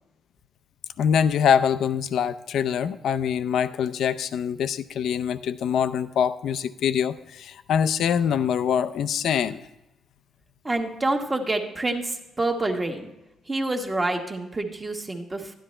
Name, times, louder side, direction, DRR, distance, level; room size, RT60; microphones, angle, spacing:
voice 1, 1.0-9.7, left 8 dB, 70° left, 13 dB, 0.5 m, -24 dB
voice 2, 10.6-13.1 13.5-15.5, right 2 dB, 20° right, 4 dB, 1.3 m, -27 dB
12.0 x 10.0 x 3.2 m, 0.99 s
cardioid pair, 90°, 0 cm